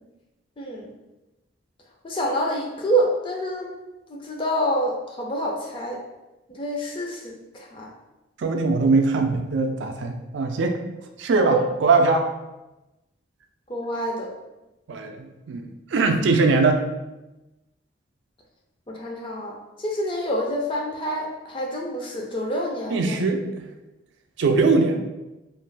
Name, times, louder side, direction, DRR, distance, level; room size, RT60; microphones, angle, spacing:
voice 1, 0.6-0.9 2.0-3.7 4.1-6.0 6.5-7.9 11.5-11.7 13.7-14.3 18.9-23.2, right 1 dB, 25° left, -1 dB, 0.4 m, -27 dB
voice 2, 8.4-10.8 11.2-12.2 14.9-16.9 22.9-23.7 24.4-25.0, right 3 dB, 70° right, 5 dB, 0.3 m, -21 dB
2.5 x 2.2 x 3.2 m, 1.0 s
head